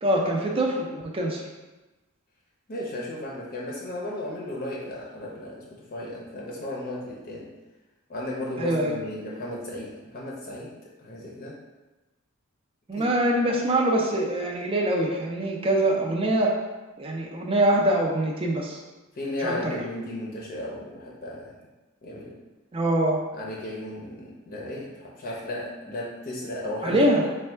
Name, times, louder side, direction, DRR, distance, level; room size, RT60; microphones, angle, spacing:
voice 1, 0.0-1.4 8.6-9.0 12.9-16.5 17.0-18.8 19.4-19.8 22.7-23.2 26.8-27.3, right 1 dB, 25° right, 0 dB, 0.5 m, -24 dB
voice 2, 2.7-5.6 5.9-7.5 8.1-10.7 11.0-11.6 13.0-13.1 19.1-21.5 22.0-22.3 23.3-27.3, left 1 dB, 45° left, -4 dB, 0.6 m, -34 dB
3.3 x 2.2 x 4.3 m, 1.1 s
head